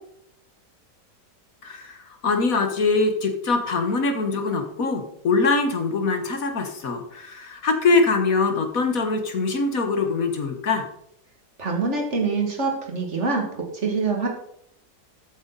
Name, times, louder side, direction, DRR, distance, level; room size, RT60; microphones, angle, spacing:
voice 1, 1.6-10.8, left 3 dB, 60° left, 6 dB, 1.9 m, -23 dB
voice 2, 11.6-13.4 13.7-14.3, right 4 dB, 45° right, 1 dB, 2.7 m, -24 dB
13.5 x 9.3 x 4.1 m, 0.73 s
omnidirectional pair, 1.7 m